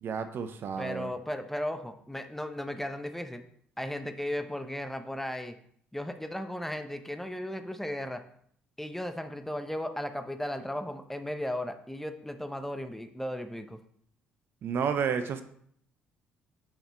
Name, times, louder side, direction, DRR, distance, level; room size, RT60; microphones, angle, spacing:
voice 1, 0.0-1.1 14.6-15.4, right 6 dB, 50° right, 9 dB, 0.8 m, -31 dB
voice 2, 0.8-3.4 3.8-5.6 5.9-8.2 8.8-13.8, left 1 dB, 5° left, 7 dB, 0.9 m, -35 dB
7.1 x 5.8 x 4.3 m, 0.64 s
hypercardioid pair, 50°, 5 cm